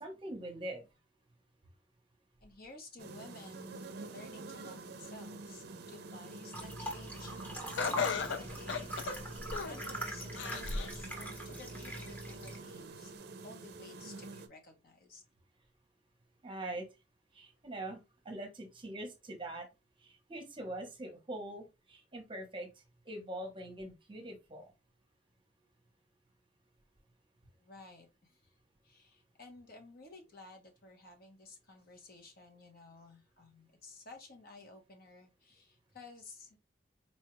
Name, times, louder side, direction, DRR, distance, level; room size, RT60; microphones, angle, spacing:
voice 1, 0.0-0.8 16.4-16.9 17.3-18.0 18.2-19.7 20.0-22.7 23.1-24.7, right 1 dB, 25° right, 0.8 m, -43 dB
voice 2, 2.4-9.1 9.4-13.1 13.4-15.2 27.6-28.4 28.8-36.6, left 3 dB, 50° left, 0.9 m, -54 dB
sound 1, 3.0-14.5, right 3 dB, 55° right, 0.5 m, -47 dB
sound 2, 6.5-12.6, right 1 dB, 10° left, 1.0 m, -43 dB
Laughter, 7.8-9.9 10.4-11.0 11.5-11.6 12.5-12.6, left 5 dB, 70° left, 0.5 m, -35 dB
4.2 x 2.3 x 3.0 m
head